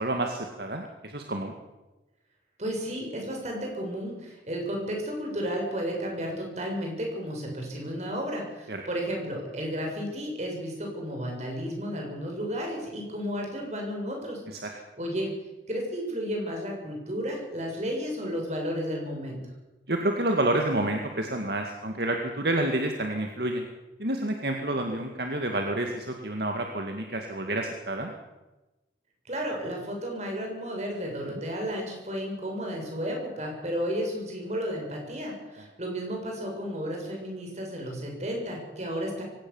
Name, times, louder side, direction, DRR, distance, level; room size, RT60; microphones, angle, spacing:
voice 1, 0.0-1.5 8.7-8.8 14.5-14.6 19.9-23.7 24.0-28.1 31.3-31.4, right 1 dB, 65° right, 3 dB, 2.1 m, -29 dB
voice 2, 2.6-14.4 14.7-15.3 15.7-19.4 29.3-39.2, equal, 40° right, 1 dB, 7.2 m, -33 dB
23.5 x 18.0 x 7.3 m, 1.1 s
head